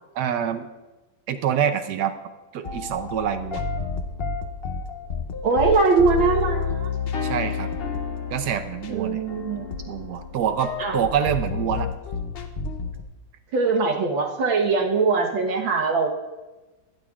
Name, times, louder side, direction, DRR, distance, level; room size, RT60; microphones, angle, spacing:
voice 1, 0.1-0.7 1.3-2.2 2.5-3.6 7.2-7.7 8.3-9.2 9.9-11.9, right 8 dB, 65° right, 9 dB, 1.1 m, -26 dB
sound 1, 2.6-13.0, left 5 dB, 70° left, 0.5 m, -30 dB
voice 2, 5.4-6.9 8.9-9.7 10.8-11.0 13.5-16.1, right 4 dB, 85° right, 1 dB, 2.0 m, -21 dB
15.5 x 10.5 x 2.4 m, 1.1 s
omnidirectional pair, 2.1 m